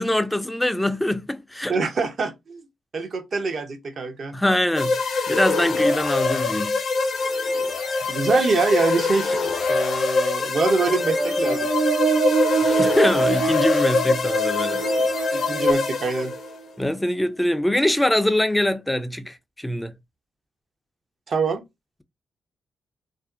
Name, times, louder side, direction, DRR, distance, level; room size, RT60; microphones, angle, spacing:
voice 1, 0.0-1.7 4.3-4.9 5.3-6.7 12.6-14.8 16.8-19.9, left 1 dB, 10° left, 0.4 m, -23 dB
voice 2, 1.7-2.6 2.9-4.3 8.1-11.7 15.3-16.3 21.3-21.6, right 4 dB, 55° right, 0.7 m, -25 dB
sound 1, 4.7-16.5, left 3 dB, 65° left, 0.6 m, -24 dB
sound 2, 10.8-16.5, right 3 dB, 70° right, 1.0 m, -25 dB
2.5 x 2.0 x 2.4 m
hypercardioid pair, 45°, 0 cm